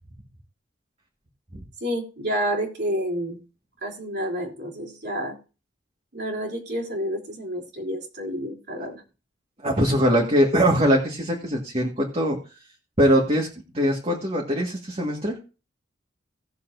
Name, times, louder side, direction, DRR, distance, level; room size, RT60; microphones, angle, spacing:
voice 1, 1.8-3.4 3.8-5.4 6.1-9.0, equal, 65° right, -1 dB, 3.3 m, -29 dB
voice 2, 9.6-12.4 13.0-13.5 13.7-15.4, equal, 35° right, 0 dB, 1.8 m, -21 dB
18.0 x 7.0 x 2.7 m, 0.34 s
head